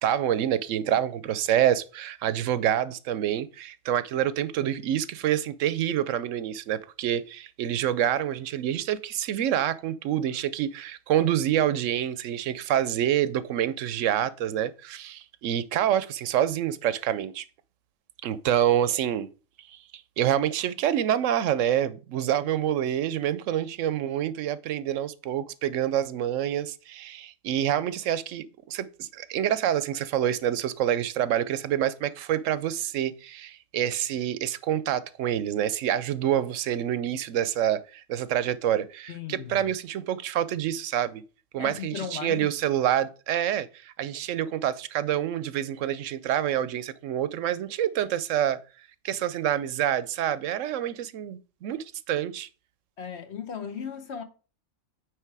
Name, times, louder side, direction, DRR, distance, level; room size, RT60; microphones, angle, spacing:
voice 1, 0.0-17.4 18.2-19.3 20.2-41.2 41.5-48.6 49.0-52.5, right 11 dB, 75° right, 0.9 m, -27 dB
voice 2, 39.1-39.7 41.6-42.5 53.0-54.2, left 7 dB, 60° left, 1.1 m, -36 dB
9.2 x 3.2 x 4.6 m
omnidirectional pair, 1.3 m